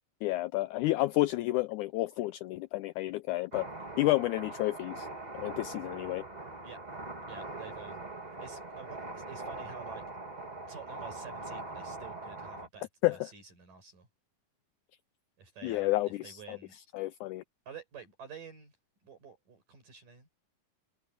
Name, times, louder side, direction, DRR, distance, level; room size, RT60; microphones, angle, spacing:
voice 1, 0.2-3.7 4.0-5.1 5.4-6.2 13.0-13.3 15.6-16.6 16.9-17.4, left 18 dB, 85° left, 1.7 m, -30 dB
sound 1, 3.5-12.7, right 2 dB, 15° right, 1.6 m, -42 dB
voice 2, 7.3-8.0 8.4-10.0 10.7-14.1 15.4-16.8 17.7-18.7 19.0-20.3, right 5 dB, 70° right, 7.5 m, -49 dB
omnidirectional pair, 4.0 m